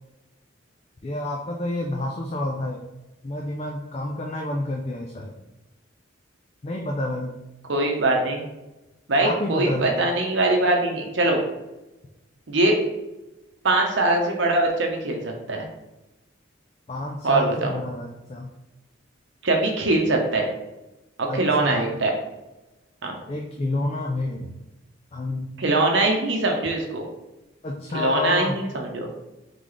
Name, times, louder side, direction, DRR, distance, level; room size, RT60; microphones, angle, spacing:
voice 1, 1.0-2.8 3.2-5.3 6.6-7.4 9.2-10.0 16.9-18.5 21.3-21.9 23.3-24.5 25.1-25.6 27.6-28.6, left 2 dB, 30° left, 0 dB, 0.4 m, -29 dB
voice 2, 7.7-8.4 9.1-11.4 12.5-12.8 13.6-15.7 17.2-17.7 19.4-20.5 21.2-22.1 23.0-23.2 25.6-27.1 27.9-29.1, right 2 dB, 65° right, 1 dB, 0.8 m, -22 dB
3.9 x 3.6 x 3.2 m, 1.0 s
head